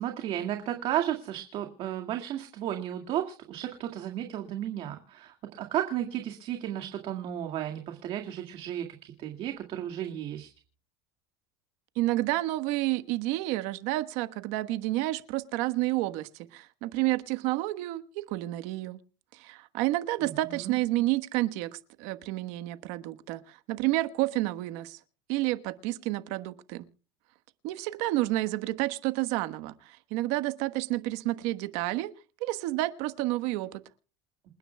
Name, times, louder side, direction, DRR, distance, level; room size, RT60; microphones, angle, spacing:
voice 1, 0.0-10.5 20.2-20.8, right 11 dB, 50° right, 2.1 m, -33 dB
voice 2, 12.0-19.0 19.3-25.0 25.3-26.8 27.6-32.1 32.4-33.8, right 17 dB, 70° right, 1.3 m, -30 dB
28.0 x 9.9 x 2.3 m
supercardioid pair, 115°, 12 cm